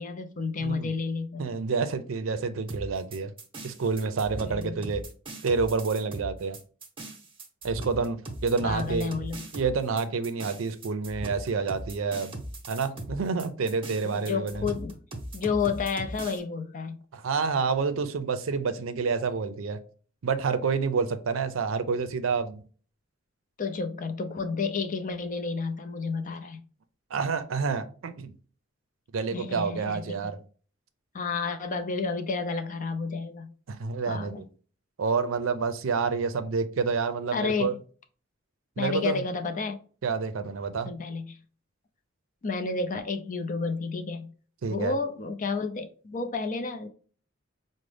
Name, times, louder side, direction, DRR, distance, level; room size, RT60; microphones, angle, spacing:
voice 1, 0.0-1.5 4.4-4.9 8.6-9.4 14.0-15.0 15.3-17.0 23.6-26.6 29.3-30.0 31.1-33.5 34.1-34.4 37.3-37.8 38.8-39.8 40.8-41.4 42.4-44.3 44.6-46.9, left 4 dB, 40° left, 0.5 m, -31 dB
voice 2, 1.4-3.3 3.6-5.0 5.4-6.6 7.6-9.2 9.5-12.4 12.7-14.7 17.1-19.8 20.2-22.6 27.1-28.3 29.1-30.4 33.7-34.5 35.0-37.7 38.8-39.2 40.0-40.9 44.6-44.9, right 5 dB, 80° right, 0.5 m, -28 dB
sound 1, 2.7-16.4, right 1 dB, 25° right, 0.8 m, -39 dB
5.0 x 2.1 x 3.2 m
head